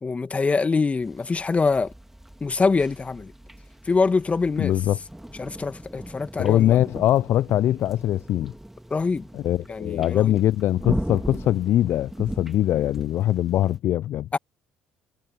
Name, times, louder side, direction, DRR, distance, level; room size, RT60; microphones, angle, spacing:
voice 1, 0.0-1.9 2.4-3.3 3.8-4.7 5.4-6.8 8.9-9.3 9.7-10.4 14.3-14.4, left 4 dB, 30° left, 2.3 m, -24 dB
sound 1, 1.0-13.8, right 1 dB, 5° right, 2.5 m, -38 dB
voice 2, 4.6-5.0 6.4-8.5 9.3-14.3, left 13 dB, 60° left, 0.5 m, -22 dB
hypercardioid pair, 55°, 5 cm